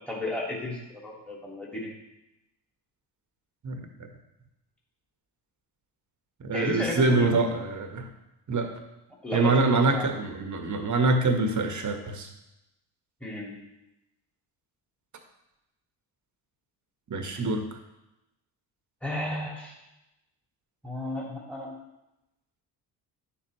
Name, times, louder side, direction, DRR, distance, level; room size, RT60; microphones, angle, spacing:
voice 1, 0.1-1.9 6.5-7.3 9.2-10.0 13.2-13.6 19.0-19.7 20.8-21.7, left 1 dB, ahead, -3 dB, 2.5 m, -33 dB
voice 2, 3.6-4.1 6.4-8.1 8.5-8.7 9.3-12.3 17.1-17.7, right 3 dB, 35° right, 5 dB, 1.5 m, -25 dB
9.6 x 6.7 x 3.3 m, 0.93 s
hypercardioid pair, 55°, 49 cm